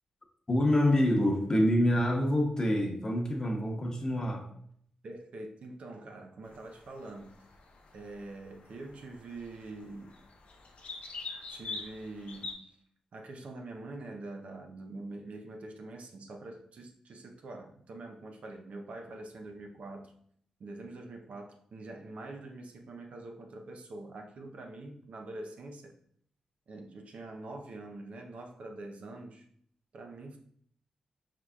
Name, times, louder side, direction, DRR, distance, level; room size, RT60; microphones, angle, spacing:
voice 1, 0.5-4.5, left 1 dB, 30° left, 2 dB, 1.0 m, -26 dB
voice 2, 5.0-7.4 7.9-10.2 11.5-12.7 13.1-20.2 20.6-26.0 26.7-29.4 29.9-30.4, right 2 dB, 70° right, 3 dB, 0.6 m, -45 dB
sound 1, 6.4-12.5, left 4 dB, 70° left, 0.6 m, -45 dB
4.7 x 3.7 x 2.3 m, 0.64 s
cardioid pair, 60°, 2 cm